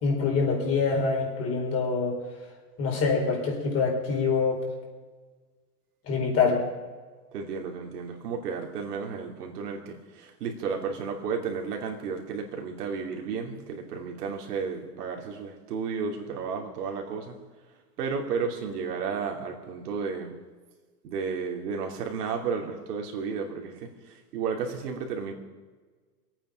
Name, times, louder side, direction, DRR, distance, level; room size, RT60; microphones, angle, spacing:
voice 1, 0.0-2.2 2.8-4.6 6.1-6.6, left 4 dB, 30° left, -1 dB, 4.5 m, -25 dB
voice 2, 7.3-17.4 18.0-20.3 21.0-25.3, right 5 dB, 70° right, 2 dB, 3.0 m, -33 dB
23.5 x 9.1 x 5.2 m, 1.4 s
hypercardioid pair, 135°, 48 cm